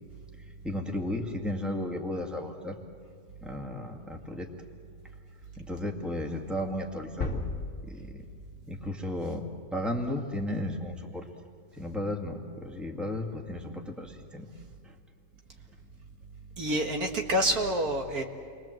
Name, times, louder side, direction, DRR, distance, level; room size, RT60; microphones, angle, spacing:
voice 1, 0.6-2.8 3.4-4.5 5.6-7.4 7.8-8.2 8.7-9.4 9.7-11.2 11.8-14.5 14.8-14.9, left 1 dB, ahead, 1 dB, 2.1 m, -34 dB
sound 1, 7.2-9.1, left 2 dB, 35° left, 1.9 m, -36 dB
voice 2, 16.6-18.2, right 1 dB, 60° right, 2 dB, 2.3 m, -27 dB
29.5 x 23.0 x 7.8 m, 2.2 s
omnidirectional pair, 1.8 m